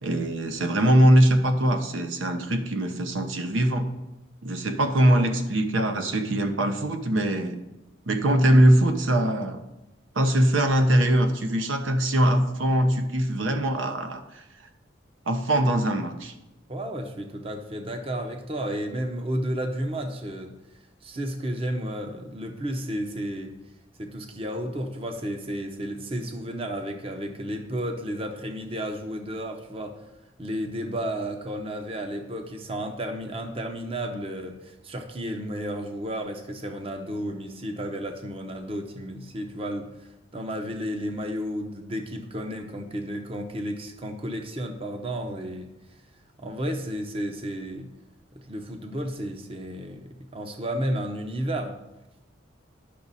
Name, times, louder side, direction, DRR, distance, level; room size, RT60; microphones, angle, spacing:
voice 1, 0.0-3.9 4.4-7.6 8.1-9.6 10.1-14.4 15.3-16.3, right 1 dB, 80° right, 6 dB, 0.9 m, -22 dB
voice 2, 16.7-20.5 21.0-23.5 24.0-30.0 30.4-39.9 40.3-45.7 46.4-47.9 48.5-50.0 50.3-51.8, equal, 30° right, 4 dB, 0.7 m, -32 dB
10.0 x 6.1 x 4.1 m, 0.96 s
head